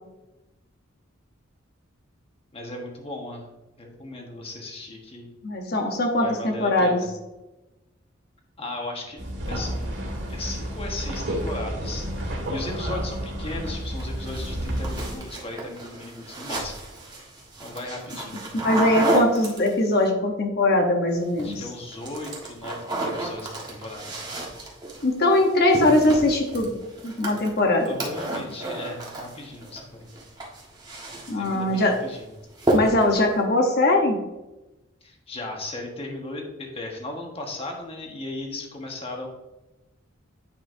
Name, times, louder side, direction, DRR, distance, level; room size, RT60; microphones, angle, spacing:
voice 1, 2.5-3.4 3.8-5.3 6.2-7.1 8.6-9.2 9.5-10.0 10.3-16.8 17.6-18.4 21.4-24.2 27.8-30.2 31.4-32.3 35.0-39.3, left 2 dB, 30° left, 1 dB, 1.3 m, -36 dB
voice 2, 5.4-7.0 18.6-21.6 25.0-26.7 27.0-27.9 31.3-32.0 32.7-34.2, left 1 dB, 50° left, 3 dB, 0.9 m, -21 dB
sound 1, 9.2-15.2, equal, 65° right, 2.0 m, -30 dB
sound 2, 14.0-20.0 21.2-21.6 21.9-29.8 30.1-31.6 31.9-32.2 32.6-33.2, right 2 dB, 20° right, 1.4 m, -31 dB
8.9 x 5.6 x 2.6 m, 1.0 s
head